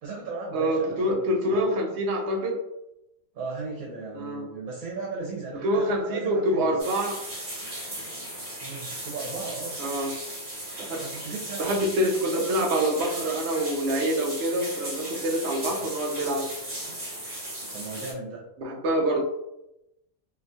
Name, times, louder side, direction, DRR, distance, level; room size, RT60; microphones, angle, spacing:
voice 1, 0.0-1.7 3.3-6.9 8.6-9.8 10.7-11.9 15.7-15.9 16.8-17.0 17.7-18.5, right 3 dB, 90° right, -3 dB, 1.1 m, -37 dB
voice 2, 0.5-2.6 4.1-4.5 5.6-7.2 9.8-10.1 10.8-11.0 11.6-16.5 18.6-19.2, right 1 dB, 65° right, 1 dB, 0.8 m, -26 dB
sound 1, 6.8-18.1, right 1 dB, 35° right, 1.0 m, -36 dB
2.8 x 2.2 x 2.6 m, 0.87 s
omnidirectional pair, 1.4 m